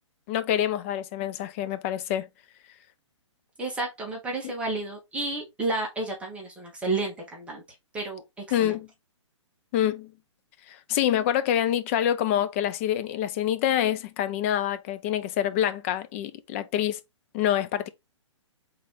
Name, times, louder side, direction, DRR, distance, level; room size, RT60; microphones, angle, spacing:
voice 1, 0.3-2.3 8.5-8.9 9.7-10.1 10.7-17.0 17.3-17.9, left 11 dB, 25° left, 0.4 m, -26 dB
voice 2, 3.6-7.6 7.9-8.8, right 2 dB, 5° right, 1.4 m, -31 dB
3.9 x 3.2 x 3.7 m
figure-of-eight pair, 125°, 16 cm